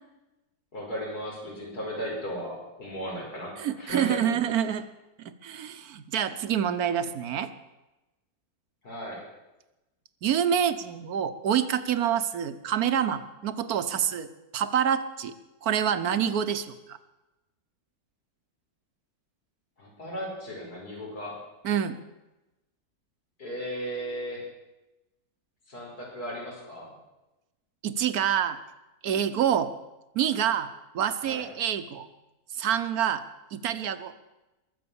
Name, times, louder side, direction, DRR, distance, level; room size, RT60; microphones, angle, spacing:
voice 1, 0.7-4.4 8.8-9.2 19.8-21.4 23.4-24.5 25.7-26.9 31.2-31.4, equal, 85° left, -4 dB, 5.8 m, -36 dB
voice 2, 3.6-4.9 5.2-7.5 10.2-14.3 14.5-15.3 15.6-17.0 21.6-22.0 27.8-28.6 29.0-29.7 30.1-30.7 30.9-32.1 32.6-33.2 33.5-34.1, right 9 dB, 75° right, 11 dB, 1.4 m, -27 dB
21.5 x 7.8 x 7.0 m, 1.0 s
omnidirectional pair, 1.6 m